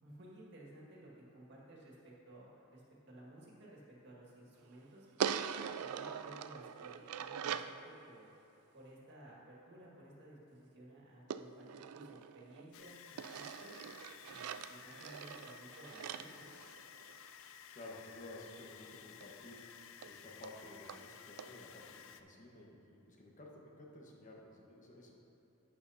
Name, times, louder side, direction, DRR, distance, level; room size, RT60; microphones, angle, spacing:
voice 1, 0.0-5.3 5.8-8.3 8.7-13.7 14.3-16.5, right 1 dB, 55° right, -4 dB, 1.9 m, -56 dB
sound 1, 5.2-7.8 11.3-12.7 13.2-17.3 19.2-19.3 19.6-19.7 20.0-20.1 20.4-20.5 20.9-21.0 21.4-21.5, right 8 dB, 90° right, 0.4 m, -42 dB
sound 2, 12.7-22.2, left 8 dB, 60° left, 0.4 m, -55 dB
voice 2, 17.7-19.6 20.1-25.1, left 1 dB, 35° left, -2 dB, 1.3 m, -53 dB
11.0 x 9.0 x 2.8 m, 3.0 s
head